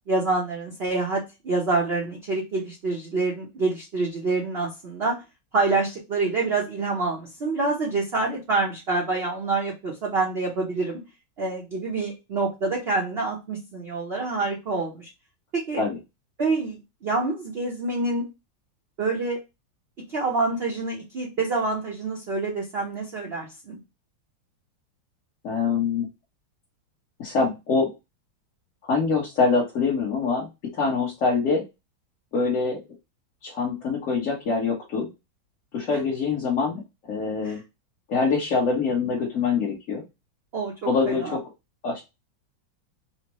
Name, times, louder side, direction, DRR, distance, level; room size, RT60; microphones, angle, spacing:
voice 1, 0.1-5.2 5.5-11.0 11.4-15.1 15.5-15.8 16.4-18.2 19.0-19.4 20.1-23.8 37.4-37.6 40.5-41.4, right 3 dB, 50° right, -2 dB, 0.7 m, -27 dB
voice 2, 25.4-26.1 27.2-27.9 28.8-30.5 30.7-31.6 32.3-32.8 33.4-35.1 35.7-36.8 37.1-37.6 38.1-40.0 40.9-41.4 41.8-42.0, left 4 dB, 50° left, -3 dB, 1.2 m, -24 dB
4.4 x 2.2 x 2.9 m, 0.24 s
omnidirectional pair, 2.2 m